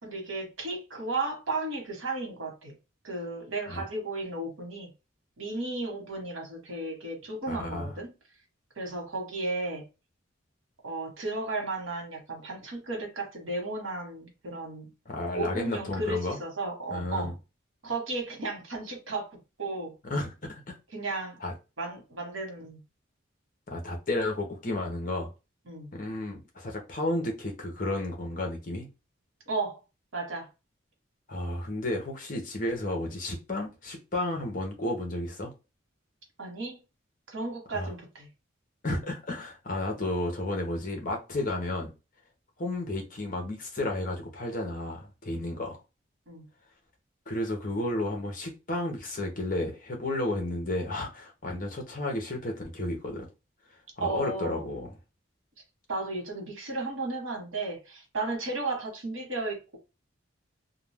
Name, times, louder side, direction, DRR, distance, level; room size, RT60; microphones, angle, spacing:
voice 1, 0.0-2.7 3.0-4.9 5.4-8.1 8.8-9.8 10.8-14.9 15.3-17.3 17.8-19.9 20.9-21.4 21.8-22.8 25.7-25.9 29.5-29.8 30.1-30.5 36.4-36.8 37.3-38.3 46.3-46.5 54.0-54.6 55.9-59.8, right 2 dB, 85° right, 1.0 m, -34 dB
voice 2, 7.5-7.9 15.1-16.4 16.9-17.3 20.0-20.8 21.4-21.5 23.7-25.3 25.9-28.9 31.3-35.5 37.7-37.9 38.8-41.9 42.6-45.8 47.3-53.3 54.0-54.9, left 1 dB, 40° left, 0.8 m, -32 dB
2.4 x 2.2 x 3.3 m
head